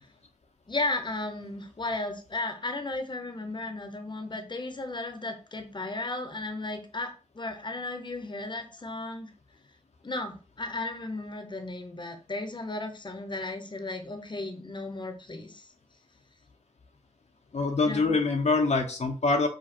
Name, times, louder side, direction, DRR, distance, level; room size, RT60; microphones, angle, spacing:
voice 1, 0.7-9.3 10.0-15.7 17.8-18.1, left 2 dB, 40° left, 7 dB, 0.9 m, -35 dB
voice 2, 17.5-19.5, left 3 dB, 65° left, 2 dB, 0.8 m, -25 dB
5.0 x 2.3 x 4.3 m, 0.36 s
cardioid pair, 40°, 12 cm